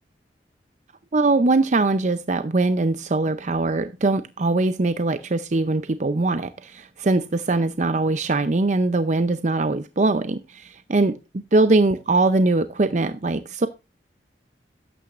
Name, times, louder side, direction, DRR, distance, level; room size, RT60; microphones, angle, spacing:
voice 1, 1.1-13.7, right 2 dB, 45° right, 12 dB, 0.6 m, -21 dB
12.5 x 9.0 x 2.5 m, 0.26 s
head